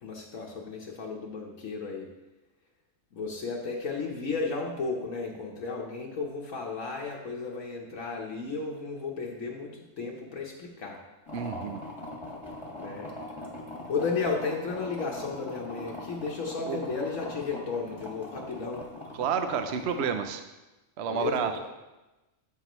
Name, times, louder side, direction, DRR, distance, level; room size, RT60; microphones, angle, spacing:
voice 1, 0.0-2.1 3.1-11.0 12.8-13.1 13.9-18.8 21.0-21.6, left 4 dB, 70° left, -1 dB, 1.3 m, -34 dB
sound 1, 11.3-20.2, left 1 dB, 20° left, 1.4 m, -41 dB
voice 2, 11.3-11.8 16.7-16.8 19.2-20.4 21.0-21.5, right 7 dB, 60° right, 7 dB, 0.8 m, -30 dB
13.0 x 5.8 x 3.1 m, 1.1 s
omnidirectional pair, 1.5 m